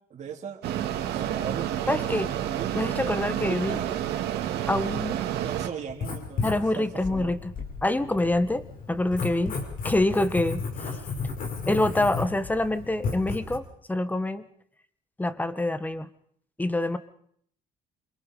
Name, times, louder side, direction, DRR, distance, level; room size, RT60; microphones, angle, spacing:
voice 1, 0.1-2.9 3.4-4.3 4.5-7.3, right 7 dB, 45° right, 0 dB, 3.9 m, -39 dB
Mechanisms, 0.6-5.7, right 11 dB, 75° right, 2.3 m, -29 dB
voice 2, 1.9-2.3 2.7-3.8 4.7-5.2 6.4-7.4 7.8-9.6 9.8-10.9 11.7-13.6 13.9-14.5 15.2-16.1 16.6-17.0, left 1 dB, 10° left, 12 dB, 1.4 m, -26 dB
Writing, 5.9-13.6, left 4 dB, 55° left, 5.6 m, -34 dB
27.5 x 22.0 x 5.0 m, 0.66 s
cardioid pair, 110°, 17 cm